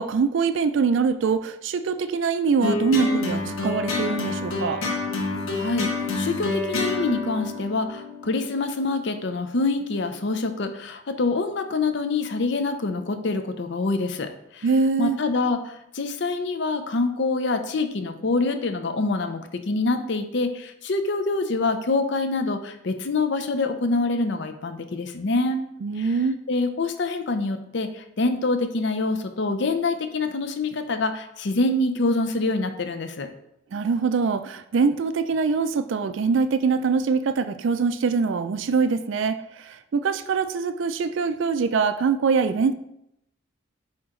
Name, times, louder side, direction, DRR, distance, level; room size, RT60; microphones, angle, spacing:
voice 1, 0.0-4.8 14.6-15.2 25.8-26.4 33.7-42.7, right 5 dB, 65° right, 10 dB, 0.4 m, -23 dB
sound 1, 2.6-9.1, left 3 dB, 85° left, 1.1 m, -28 dB
voice 2, 5.5-14.7 15.0-25.6 26.0-26.2 26.5-33.3, left 3 dB, 55° left, 8 dB, 0.5 m, -26 dB
8.7 x 2.9 x 3.7 m, 0.80 s
head